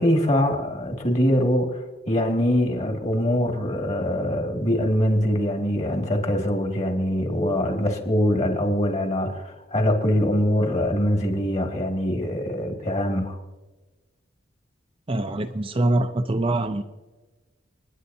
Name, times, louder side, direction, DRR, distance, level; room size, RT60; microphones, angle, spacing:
voice 1, 0.0-1.8 2.1-13.4, equal, 35° left, 2.1 m, -23 dB
voice 2, 15.1-16.8, right 2 dB, 25° right, 0.5 m, -24 dB
29.0 x 10.0 x 2.8 m
head